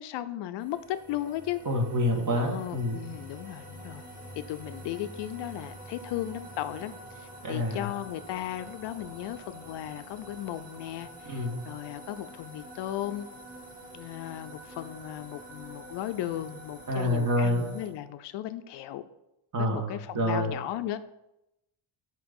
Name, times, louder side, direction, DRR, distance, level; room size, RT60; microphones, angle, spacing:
voice 1, 0.0-1.6 2.4-4.0 4.5-13.3 13.9-19.0 19.6-21.0, left 12 dB, 65° left, 11 dB, 0.5 m, -36 dB
sound 1, 0.6-17.9, right 1 dB, 15° right, 2.8 m, -47 dB
voice 2, 1.7-3.0 7.4-7.9 11.2-11.6 16.9-17.6 19.5-20.5, left 1 dB, 40° right, 0 dB, 1.9 m, -27 dB
8.7 x 3.0 x 5.3 m, 0.89 s
cardioid pair, 100°, 48 cm